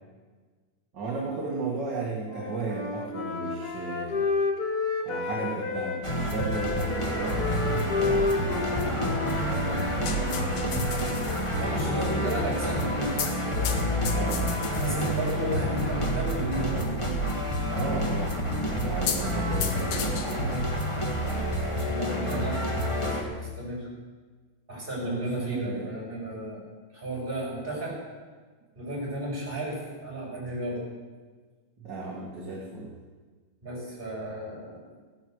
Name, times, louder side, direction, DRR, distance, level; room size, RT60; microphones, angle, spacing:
voice 1, 0.9-4.3 5.0-11.1 11.6-12.7 14.1-14.5 17.7-18.4 18.8-20.6 25.0-25.9 31.8-32.9, right 3 dB, 40° right, -3 dB, 2.2 m, -35 dB
Wind instrument woodwind instrument, 2.2-6.0 6.4-10.9, left 4 dB, 40° left, 1.5 m, -31 dB
sound 1, 6.0-23.2, equal, 15° left, 1.1 m, -29 dB
sound 2, 9.6-22.0, left 6 dB, 85° left, 2.7 m, -38 dB
voice 2, 11.6-14.2 14.8-16.8 21.6-23.9 24.7-26.6 26.9-28.0 28.7-30.8 33.6-34.9, right 1 dB, 15° right, -5 dB, 6.4 m, -34 dB
17.0 x 9.8 x 8.1 m, 1.4 s
omnidirectional pair, 3.4 m